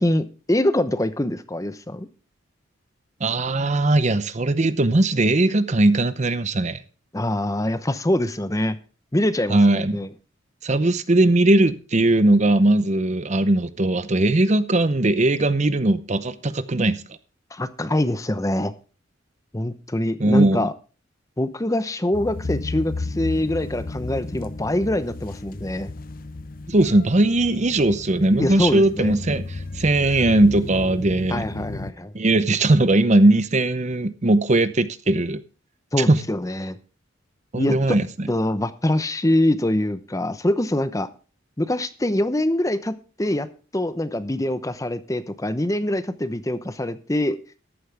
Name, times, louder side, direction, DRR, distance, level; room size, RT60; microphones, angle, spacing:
voice 1, 0.0-2.1 7.1-8.8 9.1-10.1 17.5-18.7 19.5-20.7 21.4-25.9 28.4-29.2 31.3-32.1 35.9-36.8 37.5-38.0 38.3-41.1 41.6-43.5 43.7-47.4, left 1 dB, 15° left, 0.8 m, -24 dB
voice 2, 3.2-6.8 9.5-10.0 10.6-17.0 20.2-20.7 26.7-31.4 32.1-35.4 36.0-36.2 37.5-38.3, right 2 dB, 35° right, 0.7 m, -19 dB
sound 1, 22.1-31.9, left 3 dB, 45° left, 0.7 m, -33 dB
14.0 x 11.5 x 3.4 m
head